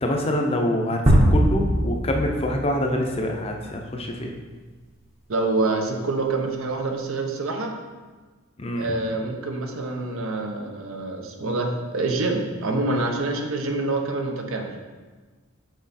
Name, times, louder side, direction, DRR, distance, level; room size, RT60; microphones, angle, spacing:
voice 1, 0.0-4.3 8.6-9.0, left 1 dB, 25° left, 2 dB, 0.6 m, -25 dB
sound 1, 1.1-3.5, equal, 30° right, 0.8 m, -20 dB
voice 2, 5.3-7.8 8.8-14.7, right 2 dB, 70° right, 3 dB, 0.8 m, -26 dB
6.2 x 4.3 x 4.1 m, 1.4 s
head